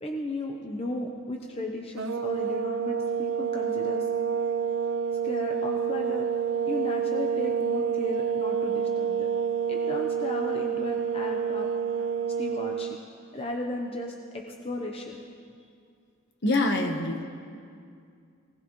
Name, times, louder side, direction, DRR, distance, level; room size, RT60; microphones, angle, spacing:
voice 1, 0.0-4.1 5.2-6.3 6.7-9.3 9.7-11.7 12.4-13.0 13.3-15.2, left 1 dB, 25° left, 1 dB, 0.8 m, -35 dB
sound 1, 2.0-13.0, right 7 dB, 60° right, 0.5 m, -28 dB
voice 2, 16.4-17.3, left 2 dB, 50° left, 4 dB, 1.2 m, -25 dB
20.0 x 17.5 x 3.1 m, 2.3 s
head